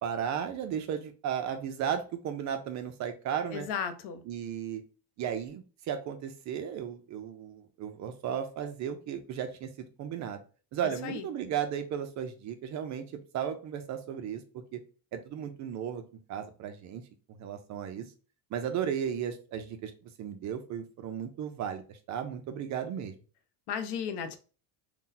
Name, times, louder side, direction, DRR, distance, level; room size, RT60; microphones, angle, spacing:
voice 1, 0.0-3.7 4.3-4.8 5.2-10.4 10.7-14.8 15.1-16.0 16.3-17.0 17.4-18.1 18.5-19.9 20.2-23.2, right 8 dB, 40° right, 0.4 m, -35 dB
voice 2, 3.5-4.2 11.0-11.2 23.7-24.4, left 7 dB, 65° left, 0.6 m, -34 dB
2.7 x 2.1 x 3.8 m
cardioid pair, 145°, 43 cm